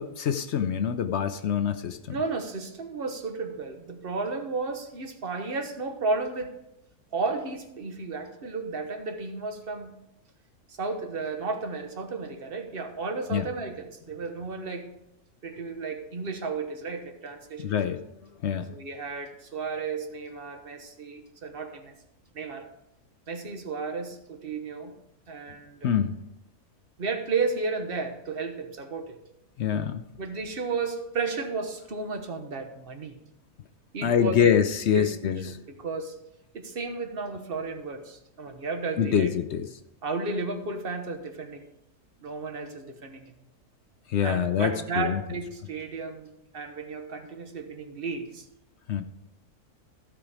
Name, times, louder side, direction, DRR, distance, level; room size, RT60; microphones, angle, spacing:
voice 1, 0.0-2.0 13.3-13.5 17.6-18.0 18.4-18.7 25.8-26.2 29.6-30.0 34.0-35.6 39.0-39.7 44.1-45.2 48.9-49.0, left 8 dB, 65° left, 9 dB, 0.7 m, -25 dB
voice 2, 2.1-6.5 7.1-9.9 10.7-14.9 15.4-17.6 18.5-21.9 22.3-22.7 23.3-24.9 25.3-25.9 27.0-29.2 30.2-33.1 33.9-34.4 34.9-35.1 35.4-36.2 36.5-39.3 40.0-41.6 42.2-43.3 44.2-48.5, right 4 dB, 40° right, 6 dB, 1.2 m, -33 dB
15.0 x 5.1 x 4.9 m, 0.86 s
omnidirectional pair, 1.6 m